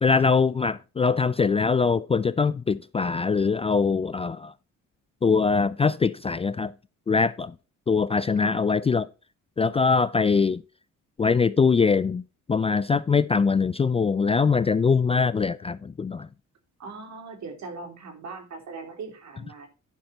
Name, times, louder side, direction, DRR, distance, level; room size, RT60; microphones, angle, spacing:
voice 1, 0.0-4.5 5.2-6.7 7.1-7.5 7.9-9.1 9.6-10.6 11.2-12.2 12.5-16.3, left 5 dB, 20° left, 0.3 m, -22 dB
voice 2, 16.8-19.7, right 4 dB, 65° right, 3.0 m, -40 dB
10.5 x 5.8 x 4.1 m
cardioid pair, 90°, 30 cm